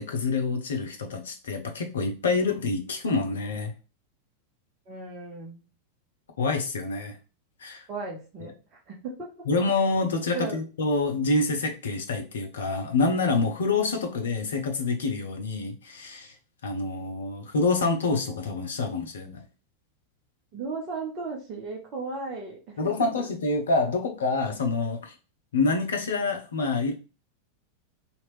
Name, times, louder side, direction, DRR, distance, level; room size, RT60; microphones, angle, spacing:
voice 1, 0.0-3.7 6.4-7.2 7.6-7.8 8.4-8.5 9.5-16.3 16.6-19.5 22.8-25.1 25.5-26.9, left 3 dB, 65° left, 4 dB, 0.7 m, -27 dB
voice 2, 4.9-5.6 7.9-9.3 10.3-10.6 20.5-22.8 23.2-23.3, right 4 dB, 35° right, -1 dB, 0.9 m, -36 dB
2.8 x 2.5 x 3.1 m, 0.32 s
figure-of-eight pair, 90°, 0 cm